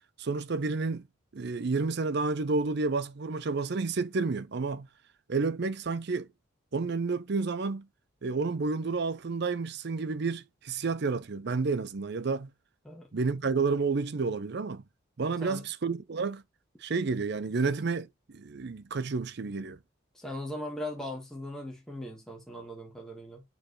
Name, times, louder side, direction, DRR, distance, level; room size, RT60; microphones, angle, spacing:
voice 1, 0.2-1.0 1.3-4.9 5.3-6.3 6.7-7.9 8.2-12.5 13.1-14.8 15.2-16.4 16.8-19.8, right 4 dB, 50° right, 0.5 m, -30 dB
voice 2, 20.1-23.4, left 1 dB, 5° left, 1.4 m, -39 dB
7.6 x 4.6 x 3.0 m
head